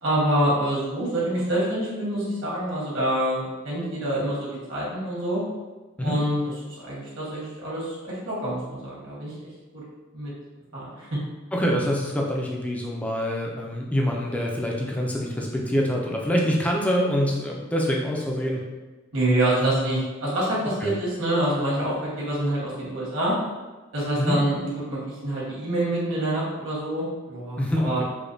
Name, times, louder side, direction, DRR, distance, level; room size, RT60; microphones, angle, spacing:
voice 1, 0.0-5.4 6.0-6.4 6.7-9.3 9.7-9.8 10.1-10.3 10.7-11.1 19.1-23.3 23.9-28.0, right 1 dB, 65° right, -6 dB, 1.4 m, -26 dB
voice 2, 11.5-18.6 19.6-20.0 20.8-21.0 24.2-24.4 27.6-28.0, equal, 5° left, -1 dB, 0.4 m, -25 dB
4.9 x 2.2 x 2.6 m, 1.2 s
head